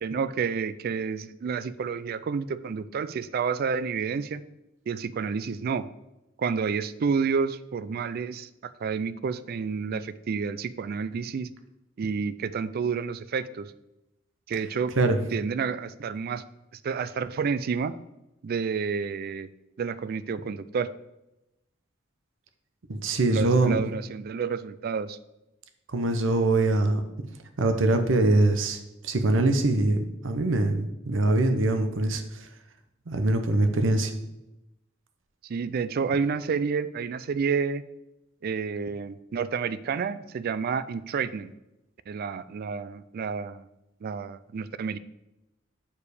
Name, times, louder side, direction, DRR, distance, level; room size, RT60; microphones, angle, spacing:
voice 1, 0.0-4.4 4.9-5.9 6.4-11.5 12.0-13.7 14.5-14.9 15.3-16.4 16.8-17.9 18.4-19.5 19.8-20.9 23.3-25.2 35.4-37.8 38.4-41.5 42.1-43.7 44.0-45.0, right 5 dB, 50° right, 15 dB, 0.3 m, -29 dB
voice 2, 22.9-23.8 25.9-27.0 27.6-32.5 33.1-34.1, right 2 dB, 75° right, 7 dB, 0.7 m, -23 dB
6.9 x 4.8 x 4.9 m, 0.92 s
head